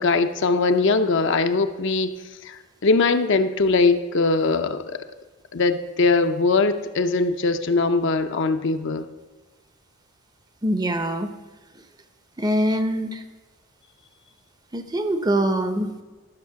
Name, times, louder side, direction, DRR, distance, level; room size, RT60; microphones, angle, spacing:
voice 1, 0.0-2.1 2.4-5.0 5.5-9.1, left 3 dB, 60° left, 8 dB, 0.6 m, -21 dB
voice 2, 10.6-11.3 12.4-13.2 14.7-15.9, right 1 dB, 20° right, 10 dB, 0.6 m, -23 dB
12.0 x 6.5 x 5.7 m, 1.3 s
head